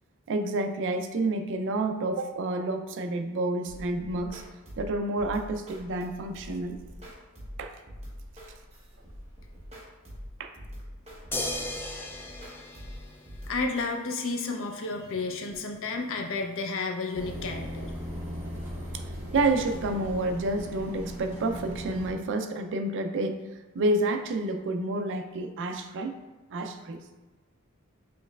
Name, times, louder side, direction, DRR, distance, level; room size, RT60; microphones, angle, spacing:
voice 1, 0.3-4.4 4.8-6.8 7.6-7.8 10.4-10.5 18.9-19.0 19.3-23.4 23.7-26.2 26.5-27.0, right 2 dB, 60° right, 7 dB, 0.4 m, -29 dB
sound 1, 3.6-14.3, equal, 30° right, 1.0 m, -45 dB
sound 2, 11.3-13.8 15.5-15.6, left 1 dB, 10° left, 0.3 m, -36 dB
voice 2, 13.5-17.9, left 3 dB, 65° left, 3 dB, 0.5 m, -32 dB
sound 3, 17.1-22.1, equal, 10° right, 0.8 m, -38 dB
5.3 x 3.1 x 2.3 m, 1.2 s
head